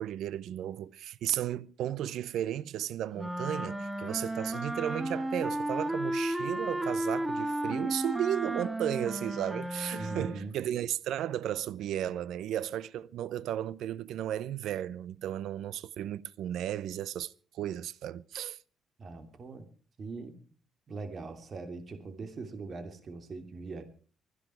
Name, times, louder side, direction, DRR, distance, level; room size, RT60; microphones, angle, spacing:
voice 1, 0.0-18.6, right 11 dB, 80° right, 0.7 m, -34 dB
sound 1, 3.2-10.5, right 1 dB, 10° right, 1.8 m, -33 dB
voice 2, 10.0-10.5 19.0-19.7 20.0-20.4 20.9-23.8, right 4 dB, 45° right, 3.1 m, -41 dB
25.0 x 10.0 x 4.6 m
cardioid pair, 90°, 0 cm